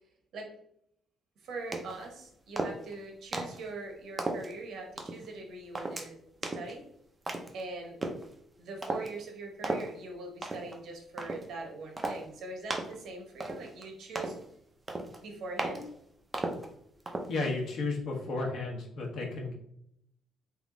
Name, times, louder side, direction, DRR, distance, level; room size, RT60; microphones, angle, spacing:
voice 1, 1.4-6.1 6.4-6.8 7.5-8.0 8.6-14.3 15.2-15.9, right 3 dB, 65° right, 2 dB, 1.1 m, -42 dB
sound 1, 1.7-2.1 2.6-2.9 3.3-3.6 4.2-4.5 5.0-5.3 5.7-6.1 6.4-6.7 7.3-7.6 8.0-8.3 8.8-9.1 9.6-9.9 10.4-10.8 11.2-11.5 12.0-12.2 12.7-13.0 13.4-13.8 14.1-14.4 14.9-15.2 15.6-15.8 16.3-16.7 17.1-17.3, right 2 dB, 20° right, 0.6 m, -35 dB
voice 2, 17.3-19.5, left 3 dB, 65° left, 0 dB, 1.2 m, -33 dB
3.5 x 3.0 x 3.8 m, 0.73 s
cardioid pair, 135°, 0 cm